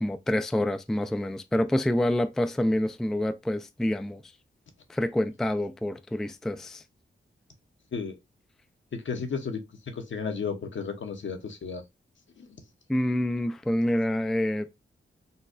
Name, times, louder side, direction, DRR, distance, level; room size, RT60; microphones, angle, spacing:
voice 1, 0.0-4.2 4.9-6.8 12.9-14.7, left 1 dB, ahead, 0.3 m, -27 dB
voice 2, 8.9-11.8 12.4-12.6, left 5 dB, 65° left, 0.8 m, -34 dB
4.0 x 2.2 x 2.5 m
cardioid pair, 60°, 21 cm